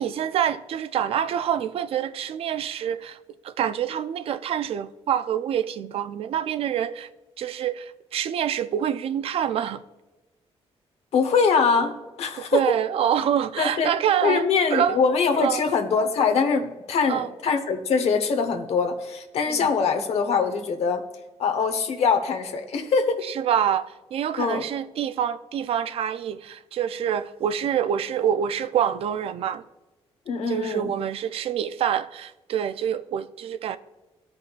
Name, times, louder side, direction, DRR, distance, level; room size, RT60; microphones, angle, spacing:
voice 1, 0.0-3.2 3.4-7.1 7.4-9.8 12.4-15.0 15.4-15.7 17.1-17.3 19.5-19.7 23.2-29.6 30.5-33.8, right 9 dB, 65° right, 0.4 m, -26 dB
voice 2, 11.1-11.9 12.2-12.8 13.6-13.9 14.2-21.0 21.4-23.2 24.4-24.6 30.3-30.9, left 5 dB, 75° left, 0.9 m, -23 dB
14.0 x 5.2 x 2.4 m
cardioid pair, 115°, 11 cm